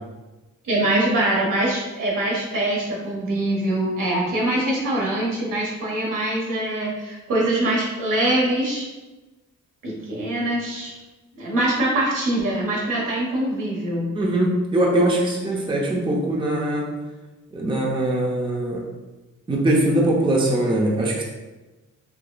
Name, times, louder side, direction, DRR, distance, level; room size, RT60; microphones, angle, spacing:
voice 1, 0.6-8.9 9.8-10.9 11.3-14.1, right 1 dB, 65° right, -4 dB, 1.2 m, -23 dB
voice 2, 14.1-16.9 17.5-18.8 19.5-21.2, right 1 dB, 15° right, -1 dB, 0.6 m, -21 dB
4.6 x 2.3 x 2.2 m, 1.1 s
cardioid pair, 60°, 34 cm